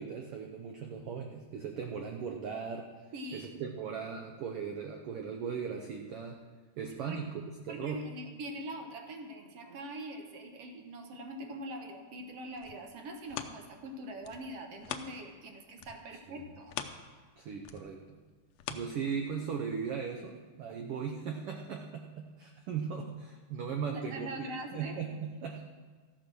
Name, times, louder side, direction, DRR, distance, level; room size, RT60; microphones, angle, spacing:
voice 1, 0.0-2.9 3.3-6.4 6.8-7.3 7.6-8.0 16.3-16.4 17.4-18.2 18.7-25.6, right 6 dB, 80° right, 3 dB, 1.3 m, -38 dB
voice 2, 3.1-3.5 7.1-7.2 7.7-16.8 23.9-25.0, right 1 dB, 60° right, 4 dB, 1.9 m, -43 dB
sound 1, 12.3-15.5 15.8-19.6 20.1-20.2, left 9 dB, 75° left, 1.6 m, -44 dB
14.0 x 8.4 x 6.1 m, 1.4 s
omnidirectional pair, 3.6 m